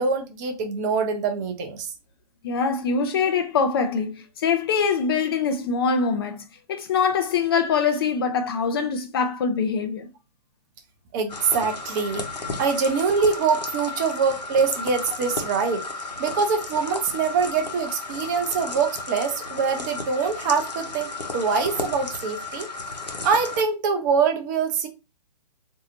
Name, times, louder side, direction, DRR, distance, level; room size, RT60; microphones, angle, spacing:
voice 1, 0.0-1.9 11.1-12.3 12.6-15.8 16.2-22.7 23.2-24.9, right 5 dB, 25° right, 0.6 m, -24 dB
voice 2, 2.4-10.1, left 5 dB, 35° left, 0.4 m, -24 dB
sound 1, 11.3-23.6, left 3 dB, 80° left, 0.9 m, -33 dB
4.0 x 2.6 x 2.7 m
figure-of-eight pair, 125°, 21 cm